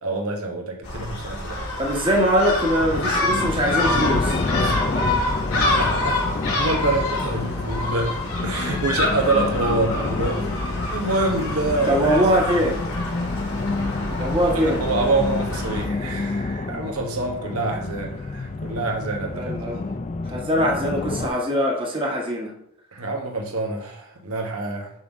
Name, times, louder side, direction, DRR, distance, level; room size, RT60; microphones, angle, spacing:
voice 1, 0.0-1.7 4.6-4.8 5.5-6.2 6.4-8.1 8.4-12.7 13.3-13.4 14.8-19.5 22.9-24.9, right 2 dB, 75° right, 2 dB, 1.2 m, -26 dB
Gull seagull, 0.8-15.8, left 1 dB, 80° left, 2.9 m, -27 dB
voice 2, 1.8-4.4 11.8-12.8 14.2-14.8 19.3-19.8 20.2-22.5, equal, 25° right, -1 dB, 1.3 m, -22 dB
sound 1, 2.8-21.3, left 3 dB, 30° left, 0.4 m, -29 dB
5.9 x 3.8 x 5.9 m, 0.74 s
head